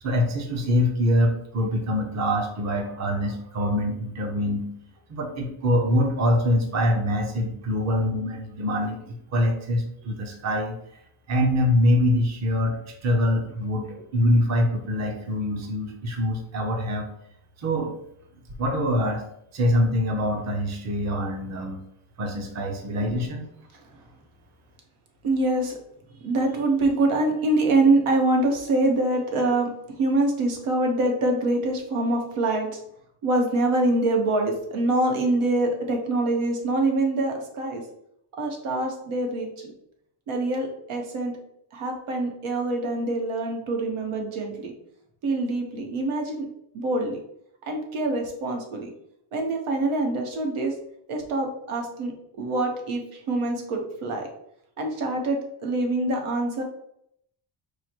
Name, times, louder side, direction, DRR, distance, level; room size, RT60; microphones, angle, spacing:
voice 1, 0.0-4.7 5.1-10.7 11.3-17.1 17.6-17.9 18.6-19.2 19.5-21.8 22.2-23.5, left 1 dB, 35° right, 2 dB, 0.7 m, -24 dB
voice 2, 25.2-25.7 26.2-29.7 30.0-32.7 33.2-37.8 38.4-39.7 40.3-41.3 41.7-44.7 45.2-46.4 46.7-47.2 47.7-48.9 49.3-50.7 51.1-52.1 52.4-53.0 53.3-54.3 54.8-56.6, right 2 dB, 90° right, 2 dB, 1.2 m, -24 dB
4.7 x 2.1 x 4.4 m, 0.73 s
cardioid pair, 175°, 49 cm